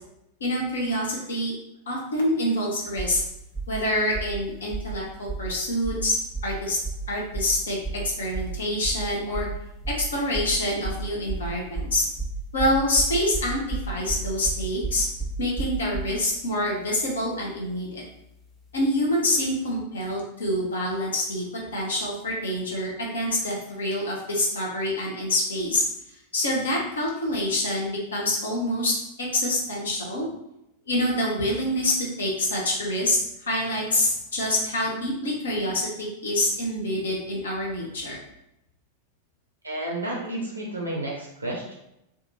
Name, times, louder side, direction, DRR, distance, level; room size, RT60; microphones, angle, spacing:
voice 1, 0.4-1.5 1.9-3.2 3.7-6.2 6.4-6.8 7.1-9.5 10.0-12.0 12.5-15.1 15.4-18.0 18.7-21.4 21.7-25.8 26.3-28.9 29.2-30.3 30.9-38.2, left 1 dB, 70° left, -2 dB, 0.8 m, -26 dB
sound 1, 3.0-3.2 3.5-3.8 4.1-4.4 4.7-5.0 5.3-5.5 5.8-6.1 6.3-6.6 6.8-7.1 7.3-7.6 7.8-8.1 8.3-8.6 8.8-9.1 9.3-9.6 9.8-10.1 10.3-10.6 10.8-16.2, right 3 dB, 5° left, 0.6 m, -31 dB
voice 2, 39.6-41.7, right 1 dB, 85° right, -2 dB, 0.5 m, -31 dB
2.6 x 2.5 x 2.7 m, 0.85 s
figure-of-eight pair, 90°, 0 cm